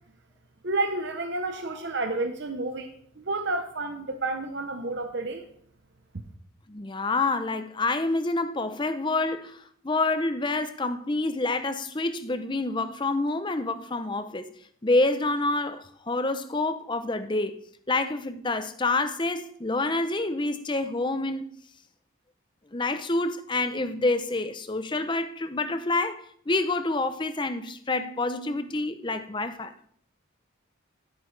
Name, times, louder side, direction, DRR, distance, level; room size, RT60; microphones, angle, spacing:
voice 1, 0.6-5.4, right 2 dB, 55° right, 0.8 m, -30 dB
voice 2, 6.7-14.5 14.8-17.6 17.9-21.5 22.7-29.7, left 2 dB, 20° left, 0.6 m, -27 dB
14.0 x 8.9 x 3.3 m
head